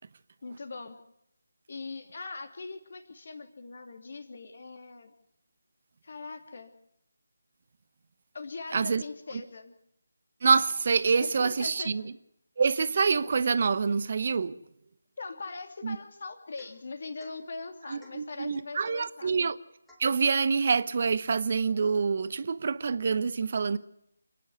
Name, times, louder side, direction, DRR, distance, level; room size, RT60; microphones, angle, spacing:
voice 1, 0.4-1.0 1.7-5.1 6.0-6.7 8.3-9.7 11.2-11.9 15.2-19.5, left 3 dB, 50° left, 2.9 m, -41 dB
voice 2, 8.7-9.0 10.4-12.0 12.6-14.6 15.8-16.0 17.9-19.6 20.0-23.8, right 5 dB, 40° right, 0.9 m, -26 dB
Domestic sounds home sounds / Chink clink / Drip, 16.6-16.9 17.2-17.4 18.0-18.3 18.8-19.1 19.9-20.2, left 1 dB, 5° left, 3.2 m, -58 dB
28.5 x 10.5 x 9.6 m
figure-of-eight pair, 155°, 0 cm